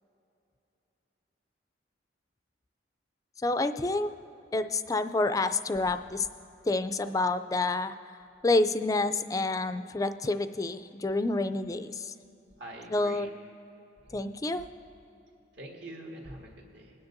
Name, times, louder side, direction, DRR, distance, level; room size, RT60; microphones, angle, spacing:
voice 1, 3.4-4.1 4.5-6.3 6.7-7.9 8.4-12.1 12.9-13.3 14.1-14.6, left 2 dB, 20° left, 10 dB, 0.3 m, -28 dB
voice 2, 12.6-13.3 14.0-14.2 15.6-16.9, right 1 dB, 65° right, -1 dB, 1.8 m, -44 dB
21.5 x 9.7 x 2.6 m, 2.9 s
head